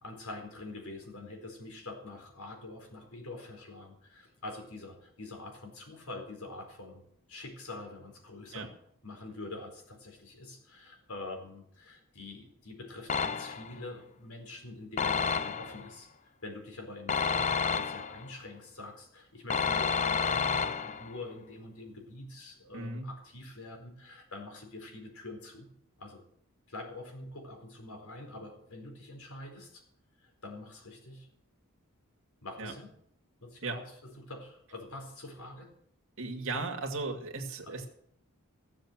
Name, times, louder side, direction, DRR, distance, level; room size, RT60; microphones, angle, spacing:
voice 1, 0.0-7.0 7.3-8.7 9.0-16.1 16.4-25.7 26.0-26.2 26.7-29.8 30.2-31.3 32.4-32.9 33.4-33.8 34.2-35.7 37.6-37.8, left 2 dB, 80° left, 3 dB, 4.4 m, -45 dB
sound 1, 13.1-13.8 15.0-15.9 17.1-18.3 19.5-21.2, left 6 dB, 35° left, 0.6 m, -30 dB
voice 2, 22.7-23.1 32.6-32.7 33.6-33.8 36.2-37.9, right 3 dB, 65° right, 2 dB, 2.3 m, -36 dB
15.5 x 7.5 x 7.5 m, 0.69 s
head